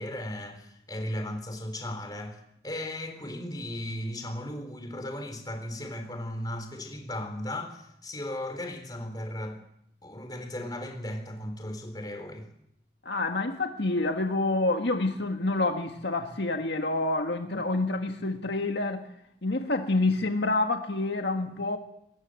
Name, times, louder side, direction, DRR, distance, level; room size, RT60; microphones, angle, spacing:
voice 1, 0.0-2.4 2.6-9.6 10.0-12.5, left 1 dB, 20° left, 3.9 m, -36 dB
voice 2, 13.1-19.0 19.4-21.8, left 2 dB, 70° left, 1.8 m, -27 dB
22.5 x 20.0 x 7.8 m
head